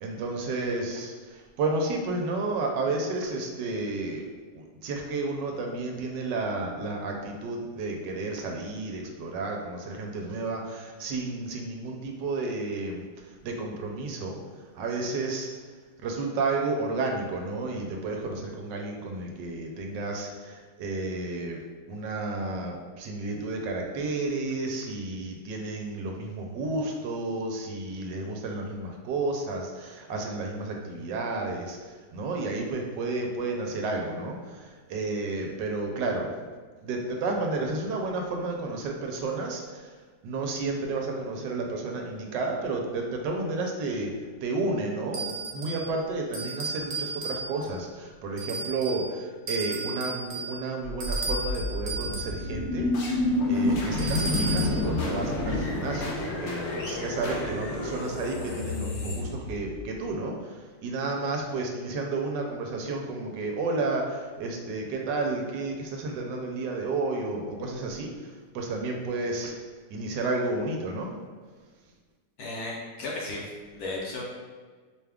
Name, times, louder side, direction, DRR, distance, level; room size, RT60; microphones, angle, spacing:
voice 1, 0.0-4.2 4.5-15.5 16.0-21.6 21.9-36.3 36.8-40.0 40.2-44.2 44.4-52.9 53.5-69.6 69.9-71.1, right 3 dB, 80° right, 1 dB, 1.2 m, -32 dB
sound 1, 45.1-45.9 46.3-47.8 48.4-49.1 49.5-52.4 54.0-54.8, right 3 dB, 60° right, 0.8 m, -34 dB
sound 2, 51.0-59.9, left 2 dB, 85° left, 0.6 m, -29 dB
voice 2, 72.4-74.2, left 2 dB, 65° left, -3 dB, 1.1 m, -35 dB
4.8 x 2.3 x 3.4 m, 1.4 s
omnidirectional pair, 2.0 m